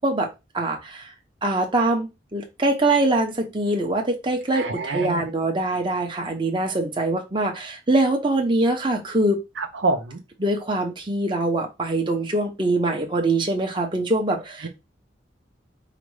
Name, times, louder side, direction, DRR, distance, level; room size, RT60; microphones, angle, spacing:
voice 1, 0.5-1.1 1.4-9.4 10.4-14.7, right 2 dB, 25° right, 1.0 m, -23 dB
voice 2, 4.5-5.2 9.6-10.2 14.6-14.7, right 3 dB, 70° right, 0.7 m, -26 dB
5.0 x 2.1 x 4.8 m
head